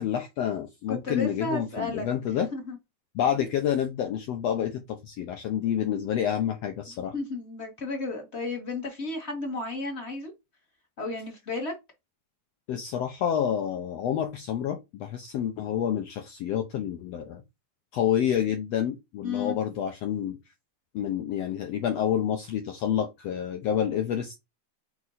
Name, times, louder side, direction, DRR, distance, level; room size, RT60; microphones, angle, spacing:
voice 1, 0.0-2.5 3.1-7.1 12.7-17.4 17.9-20.4 20.9-24.4, left 9 dB, 85° left, 1.4 m, -28 dB
voice 2, 0.9-2.0 2.5-2.8 6.9-10.3 11.0-11.7 19.2-19.6, left 3 dB, 30° left, 1.1 m, -33 dB
5.4 x 4.8 x 4.1 m
omnidirectional pair, 4.0 m